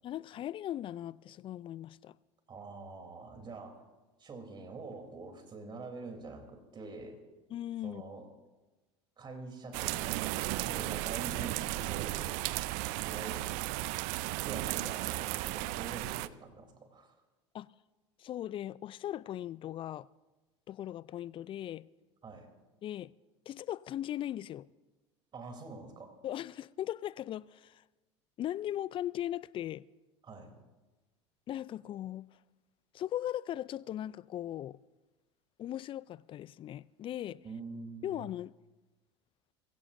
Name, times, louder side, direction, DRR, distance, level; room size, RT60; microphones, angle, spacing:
voice 1, 0.0-2.2 7.5-8.0 17.5-17.7 18.2-20.1 20.7-21.9 22.8-23.1 23.5-24.7 26.2-27.8 28.4-29.9 31.5-32.3 32.9-34.8 35.6-37.4 38.0-38.5, left 12 dB, 35° left, 0.4 m, -38 dB
voice 2, 2.5-3.8 4.2-7.2 7.8-8.3 9.2-12.4 13.0-13.6 14.4-17.1 22.2-22.5 25.3-26.1 30.2-30.5 37.4-38.2, right 3 dB, 30° right, 3.3 m, -46 dB
sound 1, 9.7-16.3, right 19 dB, 55° right, 0.5 m, -35 dB
22.5 x 16.0 x 2.6 m
hypercardioid pair, 75°, 15 cm